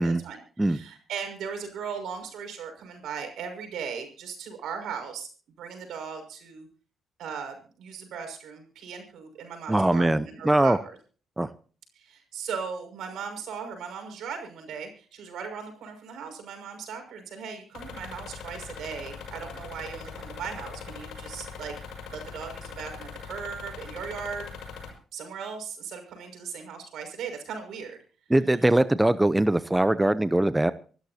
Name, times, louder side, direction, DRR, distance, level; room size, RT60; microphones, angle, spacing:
voice 1, 0.0-5.3 5.6-6.7 7.2-11.0 11.9-21.7 22.1-24.5 25.1-28.0, right 6 dB, 75° right, 6 dB, 6.0 m, -38 dB
voice 2, 9.7-10.8 11.4-11.5 28.3-30.7, right 1 dB, 10° right, 14 dB, 0.7 m, -22 dB
sound 1, 17.7-24.9, left 5 dB, 85° left, 6.4 m, -41 dB
26.0 x 13.0 x 2.9 m, 0.40 s
cardioid pair, 90°, 0 cm